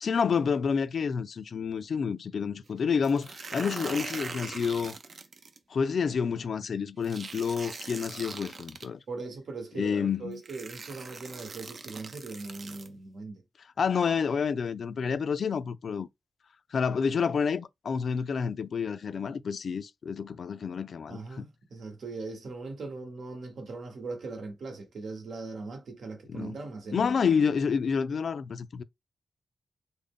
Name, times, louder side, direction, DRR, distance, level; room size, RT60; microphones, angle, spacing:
voice 1, 0.0-5.0 5.7-9.0 9.7-10.4 13.8-16.1 16.7-21.4 26.3-26.5 26.9-28.8, left 6 dB, 65° left, 0.3 m, -29 dB
sound 1, 3.0-5.6 7.0-8.9 9.9-10.0 10.4-12.9, right 4 dB, 55° right, 0.5 m, -41 dB
voice 2, 9.1-13.4 21.1-27.1, right 3 dB, 75° right, 1.1 m, -40 dB
3.5 x 2.0 x 3.6 m
wide cardioid pair, 125°, 0 cm